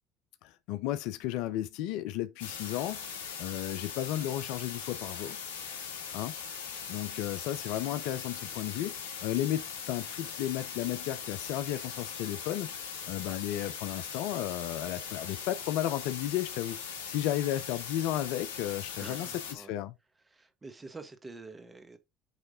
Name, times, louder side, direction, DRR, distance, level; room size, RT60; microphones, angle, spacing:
voice 1, 0.4-3.0 3.4-5.4 6.1-6.3 6.9-12.8 13.1-19.9, left 13 dB, 65° left, 0.5 m, -34 dB
sound 1, 2.4-19.5, left 6 dB, 80° left, 0.9 m, -40 dB
voice 2, 19.0-19.7 20.3-22.0, right 3 dB, 20° right, 1.3 m, -47 dB
8.2 x 3.3 x 3.7 m
hypercardioid pair, 65°, 0 cm